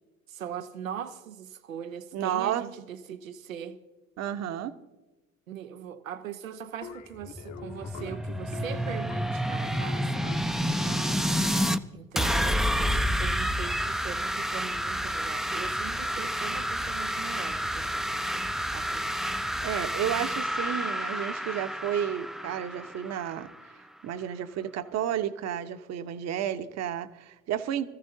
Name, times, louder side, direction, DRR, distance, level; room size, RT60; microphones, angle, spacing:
voice 1, 0.3-3.8 5.5-10.3 11.9-19.4, right 9 dB, 85° right, 0.7 m, -41 dB
voice 2, 2.1-2.7 4.2-4.7 19.6-23.5 24.0-27.9, right 10 dB, 40° right, 0.9 m, -31 dB
sound 1, 6.8-11.6, left 7 dB, 45° left, 1.1 m, -45 dB
sound 2, 7.1-11.8 12.2-23.7, equal, ahead, 0.5 m, -29 dB
23.0 x 14.5 x 2.7 m
figure-of-eight pair, 65°, 39 cm